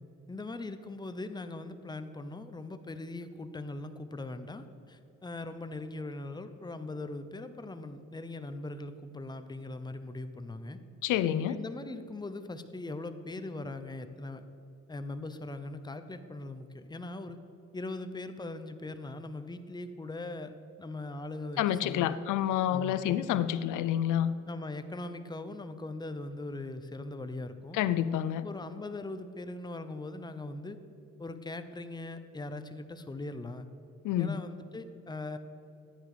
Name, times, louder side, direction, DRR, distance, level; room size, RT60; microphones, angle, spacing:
voice 1, 0.3-10.8 11.4-14.5 14.9-17.4 17.7-22.2 22.7-23.4 24.5-27.8 28.4-30.8 31.2-33.7 34.2-35.4, left 2 dB, 15° left, 10 dB, 0.9 m, -40 dB
voice 2, 11.0-11.6 21.6-24.3 27.7-28.5 34.0-34.4, left 11 dB, 85° left, 14 dB, 0.6 m, -28 dB
14.5 x 9.7 x 5.0 m, 2.7 s
cardioid pair, 90°, 30 cm